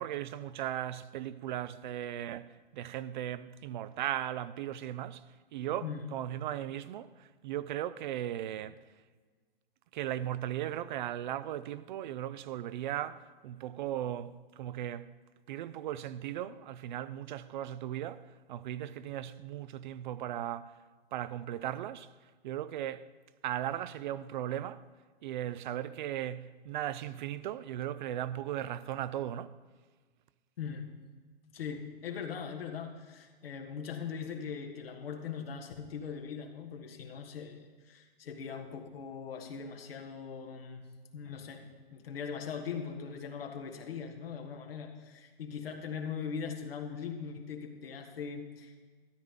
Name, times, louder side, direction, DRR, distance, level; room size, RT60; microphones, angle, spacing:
voice 1, 0.0-5.2 5.5-8.8 9.9-15.1 15.5-20.7 21.1-22.1 22.4-23.1 23.4-24.8 25.2-29.5, right 12 dB, 55° right, 0.5 m, -37 dB
voice 2, 30.6-31.0 31.5-40.8 41.1-48.9, left 6 dB, 80° left, 1.7 m, -40 dB
13.0 x 10.0 x 3.8 m
hypercardioid pair, 130°, 29 cm